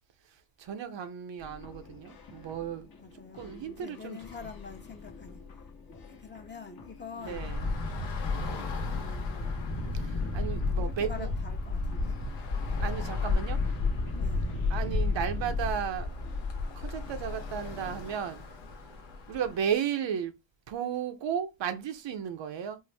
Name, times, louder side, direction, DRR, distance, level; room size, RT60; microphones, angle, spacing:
voice 1, 0.6-2.9 3.3-4.2 7.2-7.7 10.0-11.3 12.8-13.6 14.7-16.2 16.7-18.4 19.3-20.3 20.7-22.8, right 8 dB, 80° right, 0.7 m, -34 dB
sound 1, 1.4-18.2, left 4 dB, 55° left, 0.9 m, -50 dB
voice 2, 3.0-5.6 5.9-7.5 8.9-9.8 10.8-12.2 14.1-14.5, left 5 dB, 25° left, 0.7 m, -46 dB
Bus / Traffic noise roadway noise, 7.2-19.7, left 3 dB, 85° left, 1.0 m, -32 dB
4.4 x 2.0 x 3.3 m
wide cardioid pair, 115°, 43 cm